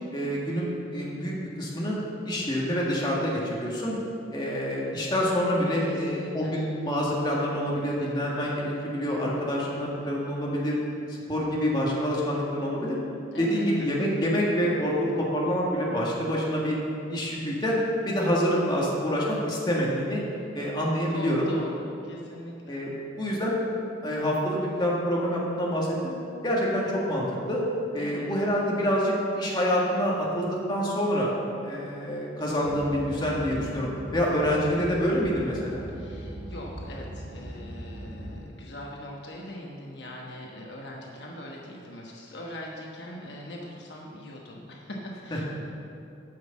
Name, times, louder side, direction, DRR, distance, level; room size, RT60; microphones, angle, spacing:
voice 1, 0.1-2.0 2.3-4.0 4.3-10.8 11.3-13.0 13.4-16.8 17.1-17.8 18.1-20.2 20.5-21.5 22.7-22.9 23.2-23.6 24.0-26.1 26.4-27.6 27.9-31.3 31.6-35.8 45.3-45.4, equal, 25° left, -4 dB, 1.8 m, -27 dB
voice 2, 5.8-6.5 13.3-13.9 20.4-20.5 21.1-22.8 26.7-26.8 28.0-28.3 35.9-45.5, left 1 dB, 60° left, -2 dB, 1.1 m, -41 dB
sound 1, 32.6-38.4, right 1 dB, 10° right, 2.0 m, -40 dB
9.2 x 6.3 x 7.2 m, 2.7 s
head